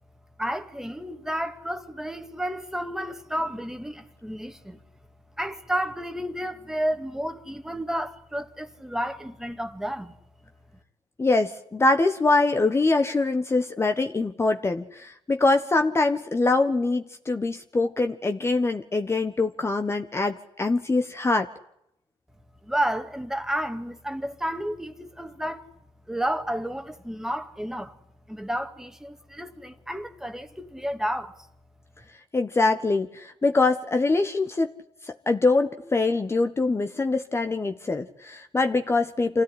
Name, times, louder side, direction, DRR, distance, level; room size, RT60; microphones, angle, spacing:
voice 1, 0.4-4.8 5.4-10.1 22.6-25.7 26.1-28.0 28.3-31.3, equal, 5° right, 2.2 m, -31 dB
voice 2, 11.2-21.5 32.3-34.7 35.0-39.4, left 3 dB, 25° left, 1.4 m, -24 dB
26.5 x 16.5 x 9.8 m
cardioid pair, 100°, 10 cm